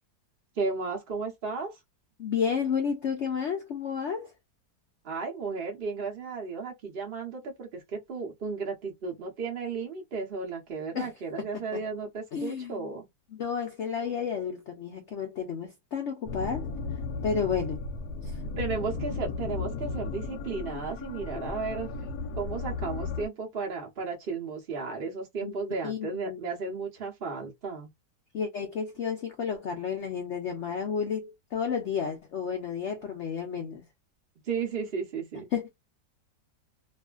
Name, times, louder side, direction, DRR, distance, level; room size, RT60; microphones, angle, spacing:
voice 1, 0.5-1.8 5.0-13.1 18.5-21.9 22.4-27.9 34.4-35.5, right 4 dB, 50° right, 0.7 m, -34 dB
voice 2, 2.2-4.3 10.9-11.1 11.4-11.5 12.3-12.9 13.4-16.7 17.2-17.8 18.2-18.3 21.3-21.4 25.4-26.4 28.3-33.8 35.5-35.7, left 6 dB, 90° left, 0.6 m, -31 dB
sound 1, 16.3-23.3, left 4 dB, 70° left, 1.0 m, -35 dB
2.7 x 2.4 x 2.2 m
omnidirectional pair, 1.9 m